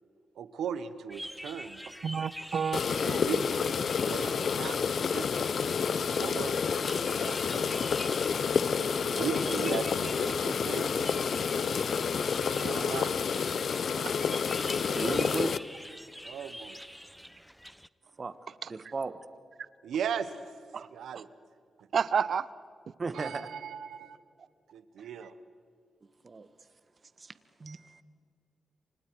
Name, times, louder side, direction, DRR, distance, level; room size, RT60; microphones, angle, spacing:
voice 1, 0.3-1.8 3.0-4.8 5.1-5.7 6.2-6.6 7.2-7.8 9.0-11.4 12.6-13.2 16.2-16.8 19.8-20.6 20.9-21.3 23.1-24.2 24.7-25.3, right 7 dB, 85° right, 12 dB, 1.2 m, -37 dB
sound 1, 1.1-17.9, equal, ahead, 0.7 m, -46 dB
voice 2, 2.0-2.8 8.1-8.4 14.0-14.1 18.6-18.7 20.7-20.9 21.9-22.5, right 6 dB, 65° right, 18 dB, 0.7 m, -30 dB
sound 2, 2.7-15.6, left 6 dB, 65° left, 0.7 m, -29 dB
voice 3, 14.9-15.6 18.2-18.3 18.7-19.1 23.0-23.5 26.2-26.5 27.2-27.3 27.6-28.0, right 4 dB, 45° right, 12 dB, 1.5 m, -35 dB
29.0 x 25.5 x 4.8 m, 2.2 s
cardioid pair, 55°, 0 cm